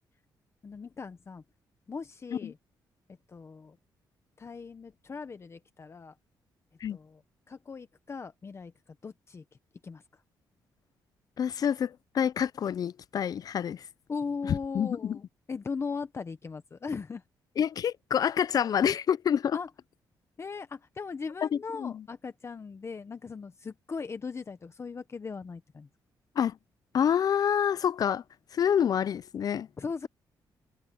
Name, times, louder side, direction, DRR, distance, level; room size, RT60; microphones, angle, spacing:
voice 1, 0.6-1.4 1.9-2.6 3.3-3.8 4.4-6.1 6.9-7.2 7.5-9.4 9.8-10.2 14.1-17.2 19.5-19.7 20.4-25.9 29.8-30.1, left 5 dB, 35° left, 1.1 m, -38 dB
voice 2, 11.4-13.9 14.5-15.2 17.6-19.6 21.4-22.0 26.4-26.6 26.9-28.2 28.5-29.7, left 8 dB, 55° left, 0.5 m, -27 dB
cardioid pair, 95°, 8 cm